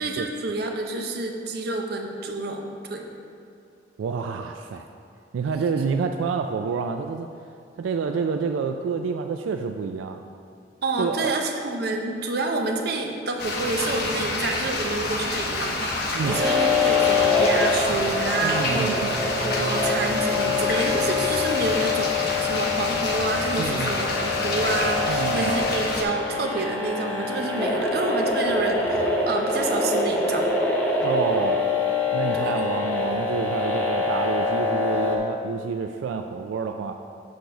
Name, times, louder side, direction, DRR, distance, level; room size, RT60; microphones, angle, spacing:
voice 1, 0.0-3.1 10.8-30.4 32.3-32.5, right 2 dB, 55° right, 2 dB, 0.7 m, -28 dB
voice 2, 4.0-4.9 5.3-7.3 7.8-10.2 11.0-11.3 16.1-16.4 18.4-19.1 23.6-23.9 25.1-25.5 31.0-31.6 32.1-36.9, right 5 dB, 90° right, 5 dB, 0.3 m, -28 dB
sound 1, 13.4-26.0, left 2 dB, 55° left, 0.8 m, -28 dB
sound 2, 16.2-35.2, left 3 dB, 10° left, 0.6 m, -25 dB
6.5 x 3.9 x 5.7 m, 2.5 s
head